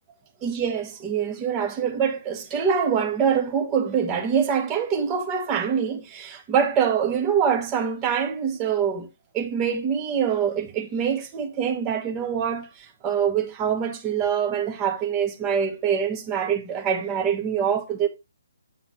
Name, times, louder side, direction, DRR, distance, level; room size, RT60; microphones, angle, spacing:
voice 1, 0.4-9.1 9.3-18.1, right 7 dB, 20° right, 1.0 m, -24 dB
8.2 x 5.7 x 3.0 m
figure-of-eight pair, 135°, 0 cm